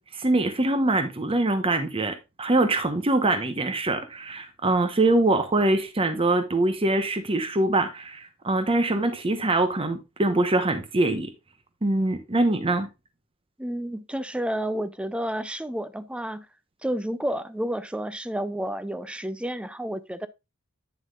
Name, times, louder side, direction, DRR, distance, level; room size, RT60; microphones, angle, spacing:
voice 1, 0.1-11.3 11.8-12.9, right 2 dB, 25° right, 0.9 m, -23 dB
voice 2, 13.6-16.5 16.8-20.3, right 1 dB, 5° right, 0.4 m, -30 dB
9.3 x 7.2 x 2.3 m
head